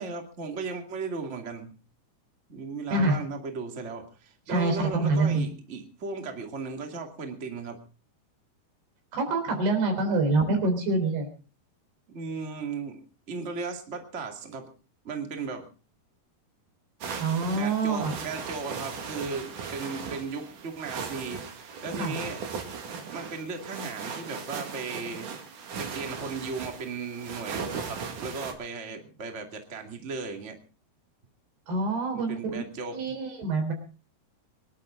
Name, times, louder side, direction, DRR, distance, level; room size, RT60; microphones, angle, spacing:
voice 1, 0.0-1.7 2.5-7.8 10.1-10.2 12.1-13.0 13.3-14.7 15.0-15.7 17.5-22.4 23.1-25.3 25.8-30.6 32.1-33.1, right 4 dB, 25° right, 4 dB, 1.9 m, -36 dB
voice 2, 4.5-5.5 9.1-11.3 17.2-18.1 22.0-22.2 31.7-32.6 32.9-33.7, right 3 dB, 90° right, 6 dB, 5.8 m, -26 dB
sound 1, 17.0-28.5, right 5 dB, 60° right, 3.4 m, -38 dB
24.5 x 11.5 x 3.8 m, 0.34 s
omnidirectional pair, 4.5 m